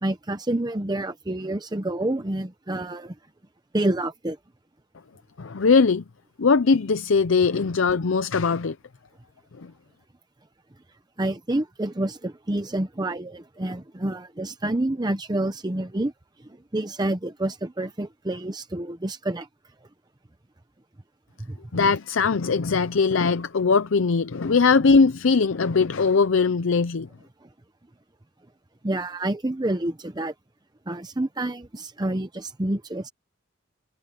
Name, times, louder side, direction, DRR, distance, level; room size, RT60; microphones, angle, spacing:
voice 1, 0.0-3.1 3.7-4.4 11.2-16.1 16.4-19.5 21.4-21.6 27.4-27.5 28.8-30.3 30.9-33.1, right 1 dB, 20° right, 0.8 m, -28 dB
voice 2, 5.4-6.0 6.4-8.8 9.6-9.7 21.7-27.1, left 4 dB, 75° left, 0.6 m, -20 dB
head